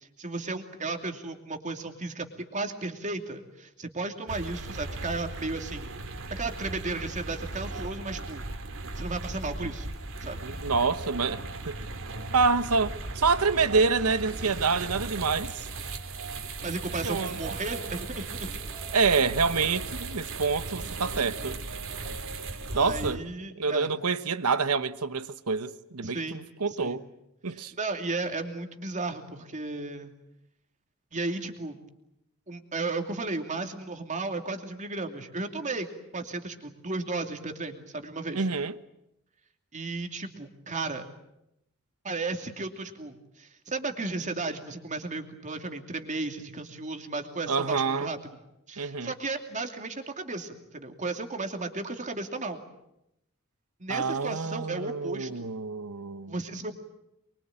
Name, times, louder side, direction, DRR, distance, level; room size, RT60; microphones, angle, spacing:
voice 1, 0.2-5.9 6.3-8.4 9.0-9.9 10.2-10.4 16.6-18.5 22.7-23.9 26.0-26.4 26.7-27.0 27.8-30.1 31.1-31.8 32.5-35.9 36.1-38.5 39.7-41.1 42.0-48.2 48.7-52.6 53.8-55.5 56.3-56.7, right 3 dB, 35° right, 2.7 m, -34 dB
sound 1, 4.3-23.2, right 3 dB, 65° right, 2.7 m, -37 dB
voice 2, 10.4-11.8 12.3-15.7 17.0-17.4 18.9-21.6 22.7-23.2 23.6-27.0 27.4-27.7 38.3-38.7 47.5-48.1 48.8-49.1 53.9-56.3, right 4 dB, 90° right, 1.2 m, -27 dB
25.0 x 23.0 x 9.0 m
head